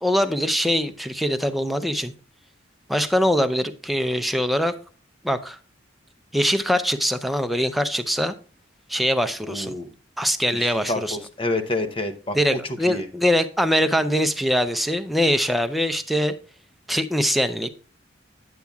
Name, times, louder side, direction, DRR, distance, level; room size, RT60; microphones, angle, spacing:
voice 1, 0.0-2.1 2.9-4.7 5.2-5.6 6.3-8.3 8.9-9.7 10.2-11.2 12.3-16.3 16.9-17.7, equal, ahead, 0.4 m, -22 dB
voice 2, 9.4-9.9 10.6-12.6 12.9-13.1, left 2 dB, 25° left, 0.8 m, -28 dB
9.3 x 8.5 x 2.3 m
head